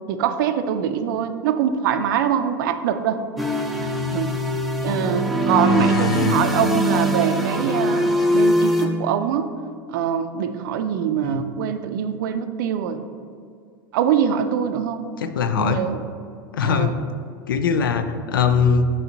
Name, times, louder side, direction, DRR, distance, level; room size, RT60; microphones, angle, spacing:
voice 1, 0.1-3.3 3.8-4.3 4.8-9.5 9.9-13.0 13.9-15.1 15.6-16.0 16.6-16.9, right 8 dB, 70° right, 9 dB, 0.4 m, -23 dB
sound 1, 3.4-8.9, equal, ahead, 0.6 m, -21 dB
voice 2, 5.7-6.5 11.2-11.4 15.2-15.8 16.5-17.0 17.5-19.0, left 6 dB, 85° left, 9 dB, 0.4 m, -21 dB
7.0 x 3.5 x 3.9 m, 2.3 s
hypercardioid pair, 95°, 11 cm